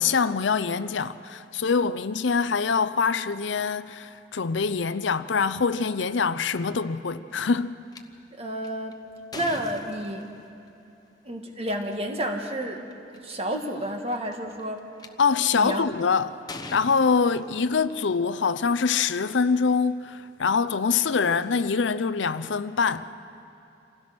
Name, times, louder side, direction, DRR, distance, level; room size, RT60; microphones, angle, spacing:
voice 1, 0.0-7.8 15.2-16.4 16.7-23.1, left 5 dB, 70° left, 0.6 m, -24 dB
sound 1, 7.9-8.0 8.6-10.5 11.8-12.0 12.6-12.7 12.9-13.4 14.1-15.1 15.7-16.0 16.5-17.9, left 3 dB, 20° left, 0.9 m, -41 dB
voice 2, 8.4-9.0 9.3-10.3 11.2-12.8 13.2-14.9 15.5-15.9, right 1 dB, 35° right, 1.7 m, -30 dB
27.5 x 16.0 x 6.1 m
head